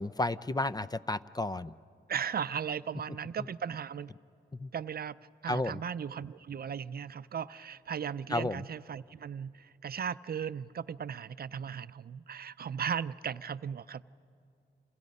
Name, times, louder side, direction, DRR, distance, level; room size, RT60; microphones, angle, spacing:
voice 1, 0.0-1.7 4.6-4.7 5.5-5.8 8.3-8.6, left 2 dB, 20° left, 15 dB, 0.5 m, -32 dB
voice 2, 2.1-4.1 4.7-5.2 5.4-14.0, right 7 dB, 55° right, 15 dB, 0.5 m, -37 dB
29.0 x 27.5 x 5.4 m, 2.4 s
cardioid pair, 70°, 19 cm